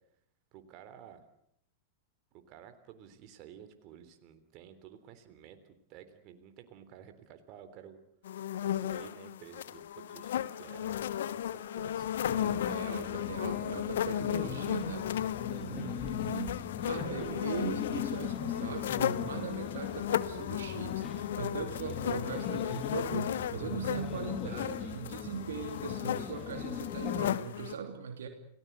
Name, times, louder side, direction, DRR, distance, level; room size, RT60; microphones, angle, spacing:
voice 1, 0.5-1.2 2.3-8.0 8.6-12.1 15.4-15.7 27.5-27.8, right 9 dB, 45° right, 8 dB, 3.5 m, -53 dB
sound 1, 8.2-27.7, left 10 dB, 70° left, 1.0 m, -35 dB
sound 2, 12.2-27.4, left 8 dB, 35° left, 2.3 m, -40 dB
voice 2, 12.3-28.3, right 6 dB, 70° right, 6 dB, 2.9 m, -40 dB
29.5 x 18.5 x 8.2 m, 0.73 s
hypercardioid pair, 95°, 0 cm